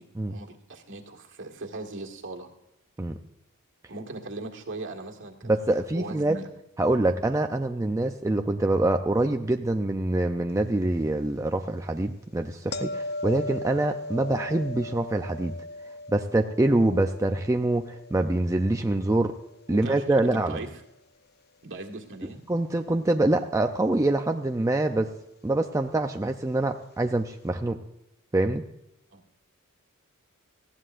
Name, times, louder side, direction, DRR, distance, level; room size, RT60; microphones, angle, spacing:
voice 1, 0.0-2.5 3.9-5.6 5.9-6.5 19.7-20.7 21.6-22.4 29.1-29.2, right 2 dB, 60° right, 3 dB, 1.7 m, -39 dB
voice 2, 5.5-6.4 6.8-15.5 16.1-19.3 19.7-20.6 22.5-25.1 25.4-27.8 28.3-28.6, right 2 dB, 15° right, 4 dB, 0.5 m, -25 dB
sound 1, 12.7-19.7 25.0-25.1, left 2 dB, 45° left, 0.6 m, -38 dB
18.5 x 15.0 x 2.5 m, 0.86 s
head